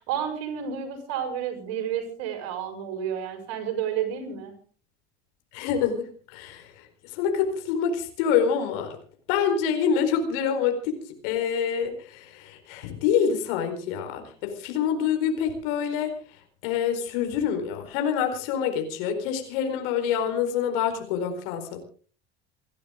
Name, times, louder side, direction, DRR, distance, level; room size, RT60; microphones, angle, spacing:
voice 1, 0.0-4.5, right 9 dB, 50° right, 6 dB, 5.4 m, -31 dB
voice 2, 5.5-9.0 9.3-11.0 11.2-16.1 16.6-21.8, left 7 dB, 55° left, 5 dB, 4.4 m, -26 dB
29.0 x 11.5 x 3.8 m, 0.42 s
figure-of-eight pair, 75°, 34 cm